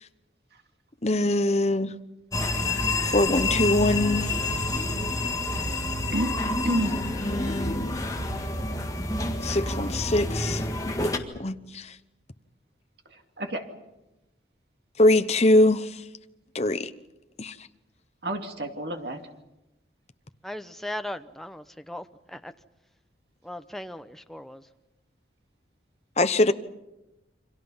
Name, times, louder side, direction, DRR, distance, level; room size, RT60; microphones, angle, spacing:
voice 1, 1.0-1.9 3.0-4.4 7.2-7.9 9.4-10.6 11.4-11.9 15.0-15.9 16.5-16.9 17.4-17.5 26.2-26.5, left 1 dB, 35° left, 1.0 m, -23 dB
sound 1, 2.3-11.2, left 2 dB, 20° left, 1.8 m, -28 dB
voice 2, 6.1-7.0 13.1-13.7 18.2-19.2, right 1 dB, 60° right, 2.5 m, -30 dB
voice 3, 20.4-22.5 23.4-24.7, left 1 dB, ahead, 0.8 m, -38 dB
29.0 x 25.0 x 5.6 m
head